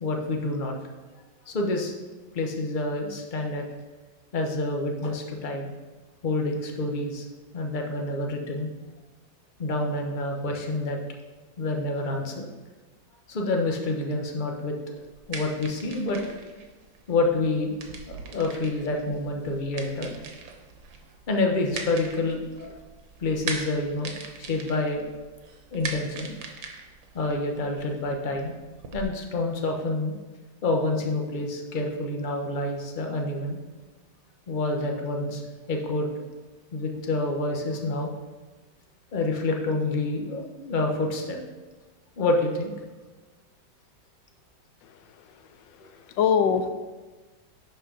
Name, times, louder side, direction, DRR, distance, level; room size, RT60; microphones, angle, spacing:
voice 1, 0.0-0.7 1.5-1.9 2.3-3.6 4.3-5.7 6.2-7.3 7.5-8.7 9.6-11.0 11.6-12.5 13.3-14.8 15.3-16.2 17.1-17.7 18.3-20.1 21.3-22.8 23.2-24.1 24.4-25.0 25.7-26.3 27.1-28.5 28.9-30.1 30.6-33.6 34.5-35.4 35.7-36.1 36.7-38.1 39.1-41.4 42.2-42.7, left 2 dB, 40° left, 2 dB, 0.7 m, -27 dB
sound 1, 15.0-29.0, right 5 dB, 90° right, 1.6 m, -41 dB
voice 2, 44.8-46.7, left 7 dB, 85° left, 10 dB, 1.3 m, -26 dB
11.0 x 4.6 x 3.7 m, 1.2 s
omnidirectional pair, 2.0 m